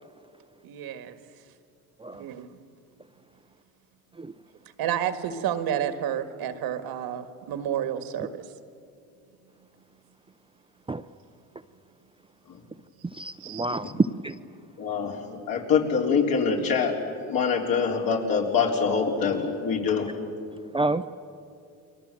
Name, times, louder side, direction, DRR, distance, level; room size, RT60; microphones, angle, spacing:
voice 1, 0.6-1.2 2.1-2.5 4.8-8.5 13.4-13.6, right 10 dB, 75° right, 10 dB, 1.8 m, -30 dB
voice 2, 13.1-14.4 20.7-21.1, right 3 dB, 15° right, 10 dB, 0.6 m, -27 dB
voice 3, 14.8-20.1, left 5 dB, 65° left, 0 dB, 4.4 m, -25 dB
30.0 x 22.5 x 7.7 m, 2.5 s
cardioid pair, 90°, 37 cm